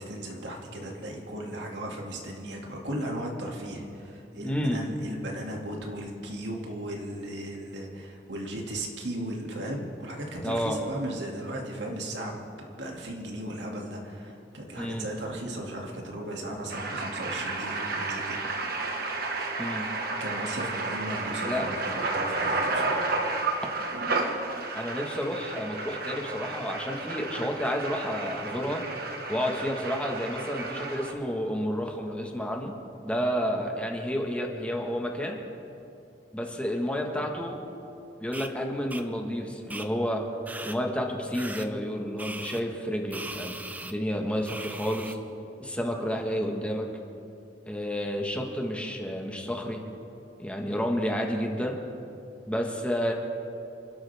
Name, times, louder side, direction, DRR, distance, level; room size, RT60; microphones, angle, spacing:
voice 1, 0.0-18.9 20.2-23.1 37.1-37.2 46.3-46.5, right 1 dB, 85° right, 0 dB, 2.4 m, -36 dB
voice 2, 4.4-4.8 10.4-10.8 14.8-15.1 19.6-19.9 21.4-21.7 24.7-28.8 29.3-32.7 33.0-35.4 36.3-37.6 38.2-40.2 40.6-43.6 43.8-45.2 45.6-46.9 47.7-49.8 50.4-51.8 52.5-53.1, equal, 5° left, 1 dB, 1.5 m, -30 dB
sound 1, 16.7-31.1, right 3 dB, 60° right, 1.5 m, -32 dB
sound 2, 38.3-38.5 38.9-39.0 39.7-39.9 40.5-40.8 41.3-41.7 42.2-42.6 43.1-43.9 44.5-45.2, right 2 dB, 10° right, 0.6 m, -39 dB
29.0 x 12.5 x 3.6 m, 2.7 s
head